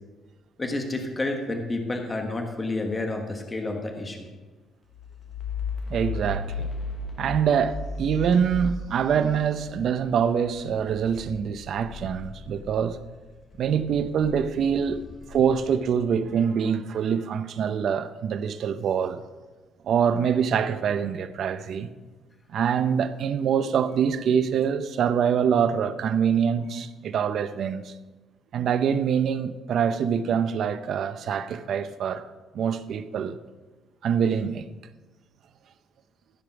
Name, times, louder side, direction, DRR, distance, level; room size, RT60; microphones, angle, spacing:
voice 1, 0.6-4.3, left 2 dB, 20° left, 1.4 m, -30 dB
sound 1, 4.9-13.2 13.6-16.2, left 3 dB, 45° left, 1.1 m, -36 dB
voice 2, 5.9-6.7 7.2-13.0 13.6-15.0 15.3-19.2 19.8-21.9 22.5-27.9 28.5-32.2 32.5-33.4 34.0-34.7, right 7 dB, 60° right, 0.6 m, -25 dB
14.5 x 5.1 x 6.0 m
cardioid pair, 130°, 0 cm